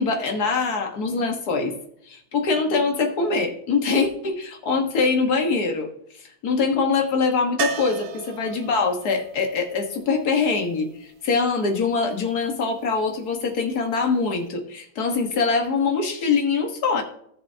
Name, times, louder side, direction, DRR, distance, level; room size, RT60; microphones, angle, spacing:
voice 1, 0.0-1.7 2.1-5.9 6.2-17.0, left 4 dB, 60° left, 3 dB, 1.9 m, -23 dB
sound 1, 7.6-11.5 14.1-14.2 14.5-14.6, right 8 dB, 80° right, 1.4 m, -35 dB
14.0 x 7.0 x 2.8 m, 0.70 s
omnidirectional pair, 2.0 m